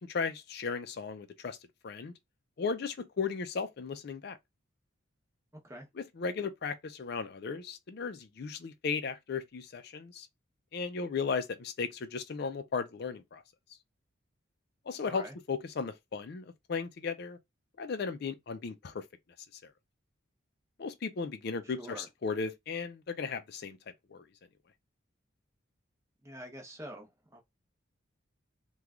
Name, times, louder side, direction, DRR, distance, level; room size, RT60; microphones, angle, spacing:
voice 1, 0.1-1.6 1.8-2.1 2.6-4.4 6.0-10.3 10.7-13.4 14.9-17.4 17.8-19.0 19.6-19.7 20.8-23.8 24.1-24.2, left 5 dB, 50° left, 0.4 m, -36 dB
voice 2, 5.5-5.9 15.0-15.3 21.6-22.1 26.2-27.4, equal, 15° right, 0.8 m, -46 dB
3.0 x 2.3 x 3.5 m
head